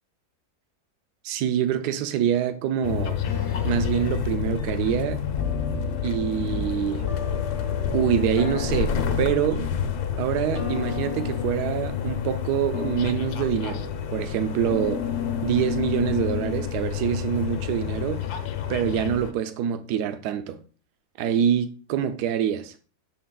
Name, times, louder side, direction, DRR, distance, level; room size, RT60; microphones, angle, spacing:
voice 1, 1.2-3.2 3.6-5.2 6.0-7.1 7.9-9.7 10.2-13.8 14.1-15.0 15.4-18.2 18.7-20.6 21.2-22.7, right 9 dB, 75° right, 1.2 m, -25 dB
sound 1, 2.8-19.3, left 8 dB, 70° left, 1.2 m, -29 dB
sound 2, 3.2-4.4 5.4-6.7 7.0-9.9 10.5-12.5 12.7-13.6 14.6-16.8, left 6 dB, 40° left, 0.4 m, -34 dB
6.5 x 4.3 x 3.8 m
omnidirectional pair, 1.8 m